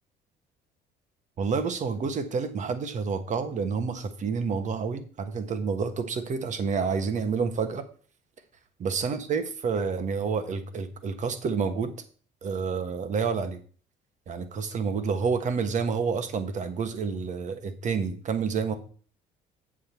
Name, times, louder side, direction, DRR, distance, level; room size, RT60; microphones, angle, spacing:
voice 1, 1.4-7.8 8.8-11.9 12.4-13.6 14.3-18.8, right 5 dB, 45° right, 9 dB, 1.4 m, -29 dB
7.7 x 7.5 x 4.4 m, 0.42 s
cardioid pair, 110°, 17 cm